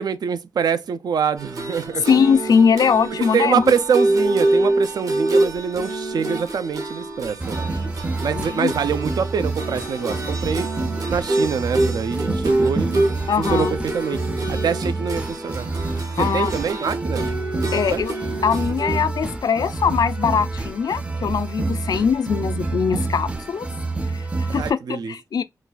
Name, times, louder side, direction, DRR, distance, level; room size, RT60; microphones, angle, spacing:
voice 1, 0.0-2.1 3.3-7.7 8.2-10.7 11.1-13.0 13.4-13.7 13.9-14.2 14.5-15.7 16.2-17.3 17.9-18.0 24.5-25.1, right 7 dB, 90° right, 0.4 m, -24 dB
sound 1, 1.4-19.0, right 2 dB, 60° right, 0.9 m, -26 dB
voice 2, 2.1-3.7 8.3-8.7 13.3-13.7 16.2-16.5 17.7-18.1 18.4-23.7 24.1-25.4, left 6 dB, 75° left, 0.3 m, -21 dB
sound 2, 7.4-24.7, right 3 dB, 15° right, 0.4 m, -28 dB
3.9 x 2.3 x 2.3 m
wide cardioid pair, 110°, 7 cm